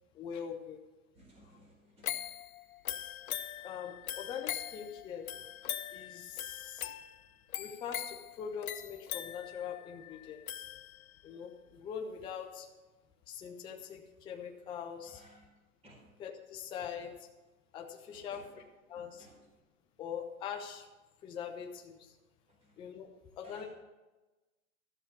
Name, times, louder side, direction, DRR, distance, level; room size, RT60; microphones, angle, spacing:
voice 1, 0.1-0.8 3.6-5.3 5.9-6.9 7.6-10.6 11.2-12.7 13.3-15.2 16.2-17.1 17.7-18.5 18.9-19.3 20.0-20.9 21.2-22.1 22.8-23.1 23.4-23.7, left 7 dB, 10° left, 3 dB, 0.5 m, -42 dB
voice 2, 1.1-2.1 15.0-15.4 15.8-16.0 18.1-18.4 18.9-19.4 22.6-22.7 23.4-23.7, right 1 dB, 15° right, -2 dB, 4.2 m, -58 dB
sound 1, 2.0-11.3 11.8-11.9, left 11 dB, 80° left, 0.9 m, -42 dB
13.0 x 7.2 x 6.8 m, 1.2 s
hypercardioid pair, 140°, 42 cm